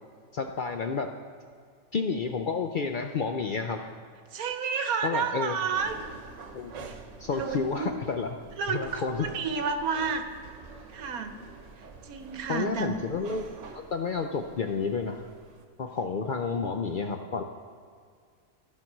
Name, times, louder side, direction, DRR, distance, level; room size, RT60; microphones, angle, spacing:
voice 1, 0.3-1.1 1.9-3.8 5.0-5.6 6.5-6.7 7.2-8.4 8.7-9.3 12.5-13.5 13.7-15.3 15.8-17.4, left 5 dB, 65° left, 5 dB, 0.5 m, -30 dB
voice 2, 4.3-5.9 6.8-6.9 7.3-7.9 8.6-10.3 10.9-11.3 11.8-12.9, right 5 dB, 85° right, 7 dB, 1.3 m, -31 dB
sound 1, 5.7-15.6, right 4 dB, 60° right, 1.2 m, -47 dB
14.0 x 5.8 x 6.0 m, 2.1 s
omnidirectional pair, 1.5 m